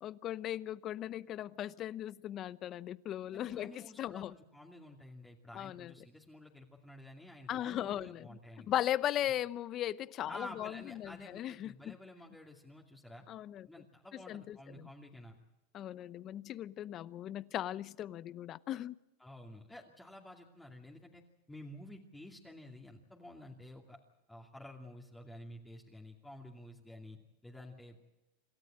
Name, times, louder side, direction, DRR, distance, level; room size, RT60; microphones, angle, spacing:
voice 1, 0.0-4.3 5.5-5.9 7.5-12.0 13.3-13.7 14.1-14.9 15.7-18.9, left 12 dB, 40° left, 0.8 m, -38 dB
voice 2, 3.3-8.7 10.3-13.2 13.7-15.4 19.2-21.2 21.5-24.0 24.3-27.2 27.4-28.1, left 1 dB, 5° left, 2.5 m, -51 dB
27.5 x 13.5 x 8.8 m
supercardioid pair, 120°, 0 cm